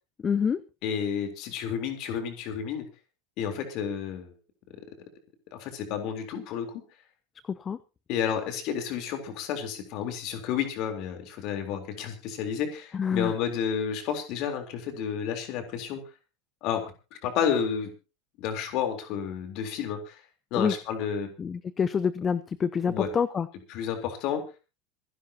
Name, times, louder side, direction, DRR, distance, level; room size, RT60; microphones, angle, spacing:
voice 1, 0.2-0.6 7.5-7.8 12.9-13.3 20.6-20.7 21.4-23.5, left 6 dB, 25° left, 17 dB, 0.6 m, -27 dB
voice 2, 0.8-2.9 3.4-4.3 5.5-6.8 8.1-16.0 16.6-16.8 17.1-17.9 18.4-20.2 20.5-21.3 22.9-23.1 23.7-24.4, left 8 dB, 45° left, 6 dB, 3.7 m, -31 dB
26.0 x 11.5 x 2.9 m, 0.32 s
figure-of-eight pair, 80°, 0 cm